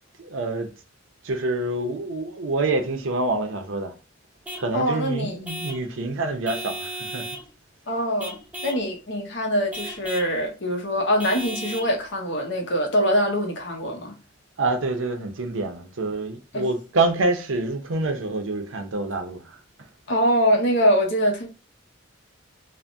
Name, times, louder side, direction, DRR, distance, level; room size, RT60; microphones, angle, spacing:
voice 1, 0.2-0.7 1.2-3.9 4.6-7.3 14.6-19.6, right 2 dB, 75° right, 0.6 m, -26 dB
Vehicle horn car horn honking / Truck, 4.4-4.7 5.4-5.9 6.4-7.5 8.2-8.9 9.7-10.3 11.2-11.9, right 1 dB, 10° right, 0.5 m, -35 dB
voice 2, 4.7-5.4 7.9-8.4 8.6-14.1 16.5-16.6 20.1-21.5, equal, 60° left, 0.8 m, -23 dB
3.3 x 2.1 x 2.5 m
head